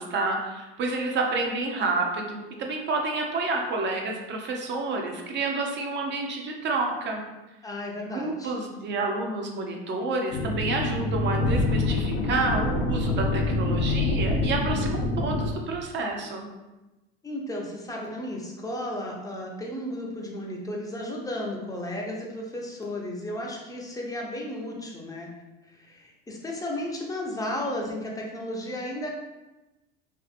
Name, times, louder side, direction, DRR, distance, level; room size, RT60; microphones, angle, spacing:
voice 1, 0.0-7.2 8.1-16.5, right 3 dB, 35° right, 1 dB, 0.5 m, -29 dB
voice 2, 7.6-8.5 17.2-25.3 25.7-29.1, left 1 dB, 10° left, -1 dB, 0.5 m, -34 dB
sound 1, 10.3-15.5, left 2 dB, 85° left, 0.5 m, -26 dB
2.7 x 2.5 x 2.4 m, 1.0 s
supercardioid pair, 105°, 30 cm